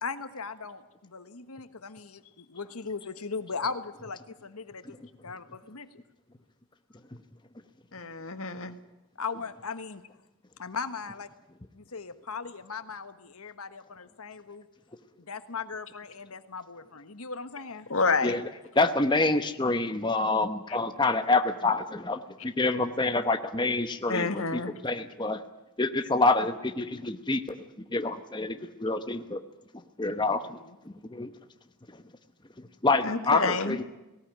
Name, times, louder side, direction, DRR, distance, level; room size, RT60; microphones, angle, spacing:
voice 1, 0.0-4.8 5.2-6.0 9.2-10.0 10.6-11.3 11.7-14.6 15.2-17.9 30.4-30.8, left 5 dB, 85° left, 10 dB, 1.3 m, -38 dB
voice 2, 7.9-8.8 17.9-18.4 24.1-24.7 33.0-33.8, left 4 dB, 70° left, 9 dB, 1.7 m, -28 dB
voice 3, 18.8-25.4 25.8-27.4 27.9-29.4 30.0-30.6 31.1-31.3 32.8-33.8, left 3 dB, 20° left, 7 dB, 0.9 m, -27 dB
18.5 x 18.0 x 9.0 m, 0.99 s
head